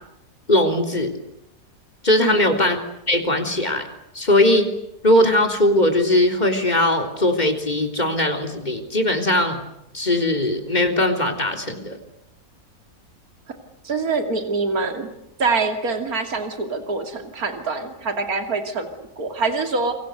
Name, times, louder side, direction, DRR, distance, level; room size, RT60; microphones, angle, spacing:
voice 1, 0.5-1.1 2.0-2.8 3.1-3.9 4.1-4.7 5.0-9.6 9.9-12.0, left 1 dB, 25° left, 5 dB, 3.7 m, -19 dB
voice 2, 13.8-15.1 15.4-19.9, right 3 dB, 65° right, 6 dB, 3.2 m, -25 dB
28.5 x 25.0 x 8.1 m, 0.82 s
omnidirectional pair, 1.7 m